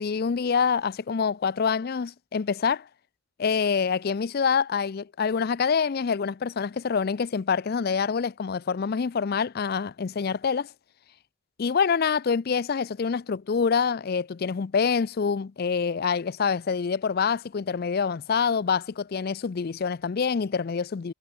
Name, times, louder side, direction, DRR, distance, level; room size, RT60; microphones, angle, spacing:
voice 1, 0.0-2.9 3.4-10.7 11.6-21.1, left 6 dB, 45° left, 0.4 m, -26 dB
head